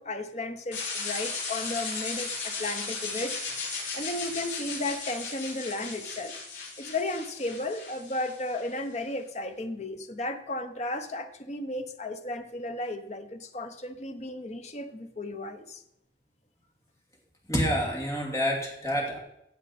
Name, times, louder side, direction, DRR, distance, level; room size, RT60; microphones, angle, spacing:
voice 1, 0.0-3.5 3.9-6.3 6.8-15.8, left 2 dB, 40° left, 8 dB, 1.0 m, -34 dB
sound 1, 0.7-8.7, left 4 dB, 75° left, 5.1 m, -36 dB
voice 2, 17.5-19.2, equal, 15° left, -1 dB, 2.6 m, -28 dB
15.5 x 8.0 x 4.3 m, 0.83 s
head